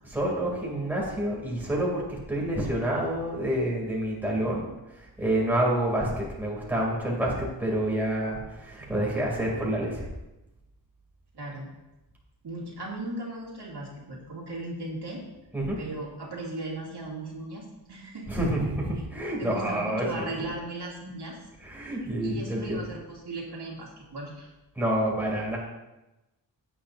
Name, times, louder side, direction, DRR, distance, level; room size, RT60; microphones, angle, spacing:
voice 1, 0.1-4.7 5.0-10.1 15.5-15.8 18.3-20.5 21.6-22.9 24.8-25.6, right 1 dB, 5° right, -4 dB, 2.8 m, -28 dB
voice 2, 11.3-11.7 12.4-15.2 15.8-18.4 18.9-19.0 19.4-21.4 22.2-24.5, right 2 dB, 65° right, -3 dB, 2.6 m, -37 dB
16.0 x 8.6 x 2.7 m, 0.99 s
wide cardioid pair, 155°, 43 cm